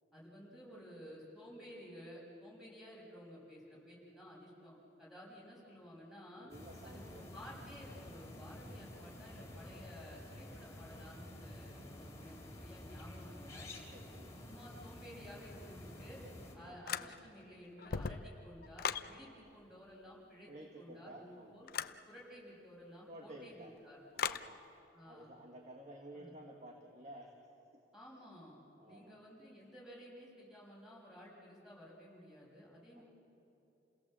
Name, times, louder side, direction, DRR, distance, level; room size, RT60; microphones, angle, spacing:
voice 1, 0.1-6.5 6.8-13.7 14.4-16.2 16.5-20.5 20.8-21.7 22.1-24.0 24.9-25.3 26.1-26.3 27.9-28.6 28.9-33.0, equal, ahead, -5 dB, 6.3 m, -54 dB
voice 2, 6.3-7.3 13.8-14.4 16.6-16.8 20.5-21.5 23.0-23.7 24.1-24.6 25.0-27.3 27.7-27.8 28.8-29.2 33.0-33.1, right 1 dB, 40° right, 1 dB, 1.6 m, -53 dB
sound 1, 6.5-16.6, left 1 dB, 15° left, 3.8 m, -51 dB
sound 2, 16.9-17.4 17.8-19.1 21.7-22.0 24.2-24.5, left 7 dB, 55° left, 0.6 m, -38 dB
29.5 x 17.5 x 7.6 m, 2.9 s
head